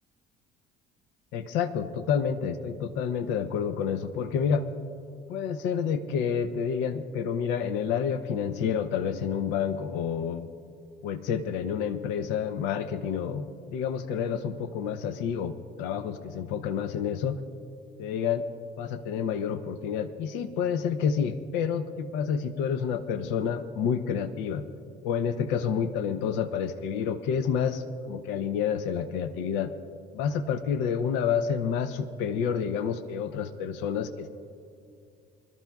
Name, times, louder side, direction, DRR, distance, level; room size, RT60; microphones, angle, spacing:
voice 1, 1.3-4.7 5.3-10.5 11.0-17.4 18.0-18.4 18.8-24.6 25.0-29.7 30.1-34.3, left 7 dB, 70° left, 12 dB, 0.7 m, -29 dB
25.5 x 12.5 x 2.3 m, 2.4 s
hypercardioid pair, 60°, 20 cm